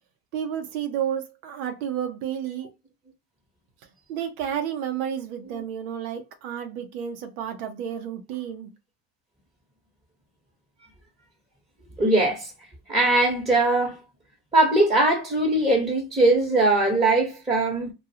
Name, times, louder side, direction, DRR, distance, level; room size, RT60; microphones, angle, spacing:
voice 1, 0.3-2.7 4.1-8.7, right 9 dB, 80° right, 0.7 m, -31 dB
voice 2, 12.0-12.5 12.9-14.0 14.5-17.9, right 2 dB, 15° right, 1.0 m, -21 dB
2.4 x 2.3 x 2.7 m
supercardioid pair, 80°, 43 cm